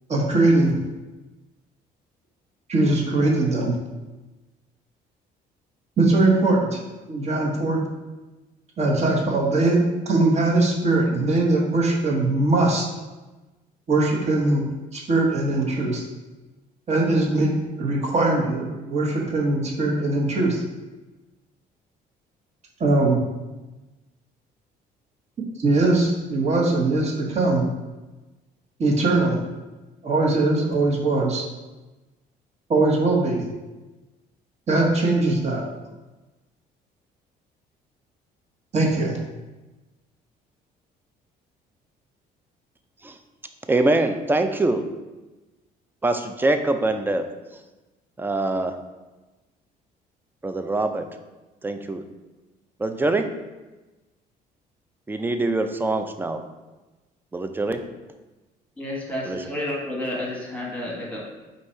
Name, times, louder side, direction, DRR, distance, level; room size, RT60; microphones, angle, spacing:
voice 1, 0.1-0.7 2.7-3.7 6.0-6.8 7.1-7.8 8.8-12.9 13.9-14.6 14.9-16.0 16.9-17.5 17.8-20.6 22.8-23.2 25.6-27.7 28.8-29.4 30.0-31.4 32.7-33.4 34.7-35.6 38.7-39.1, right 2 dB, 40° right, -1 dB, 1.0 m, -21 dB
voice 2, 43.7-44.8 46.0-47.3 48.2-48.7 50.4-51.0 51.6-52.0 52.8-53.3 55.1-56.4 57.3-57.8 59.3-59.4, right 2 dB, 10° right, 7 dB, 0.3 m, -23 dB
voice 3, 58.8-61.2, left 1 dB, 10° left, -3 dB, 1.1 m, -30 dB
4.0 x 2.7 x 4.3 m, 1.1 s
cardioid pair, 110°, 17 cm